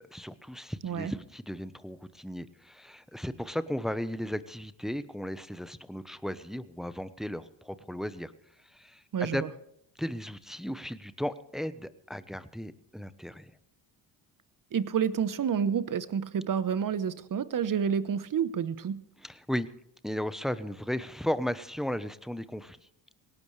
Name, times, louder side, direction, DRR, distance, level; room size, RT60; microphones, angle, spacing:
voice 1, 0.0-8.3 8.6-9.4 10.0-13.5 19.2-19.7 20.0-22.8, equal, ahead, 13 dB, 0.9 m, -35 dB
voice 2, 0.8-1.1 9.1-9.5 14.7-19.0, right 7 dB, 45° right, 15 dB, 1.0 m, -29 dB
18.0 x 18.0 x 3.3 m, 0.76 s
supercardioid pair, 65°, 47 cm